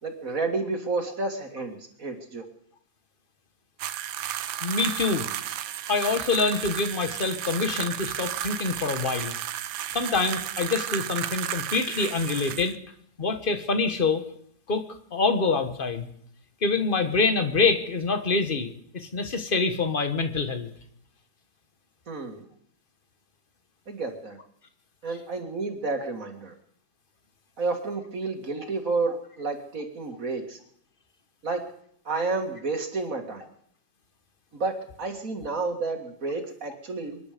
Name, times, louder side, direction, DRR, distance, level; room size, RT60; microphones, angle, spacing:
voice 1, 0.0-2.4 22.1-22.5 23.9-24.4 25.0-26.5 27.6-30.6 31.4-31.6 32.1-33.4 34.5-37.2, right 3 dB, 45° right, 4 dB, 2.4 m, -30 dB
sound 1, 3.8-12.7, right 11 dB, 80° right, 1.5 m, -33 dB
voice 2, 4.6-5.3 5.9-9.4 9.9-12.7 13.2-14.2 14.7-16.1 16.6-20.7 25.1-25.2, left 4 dB, 30° left, 8 dB, 1.4 m, -26 dB
24.5 x 11.0 x 5.2 m, 0.66 s
omnidirectional pair, 2.1 m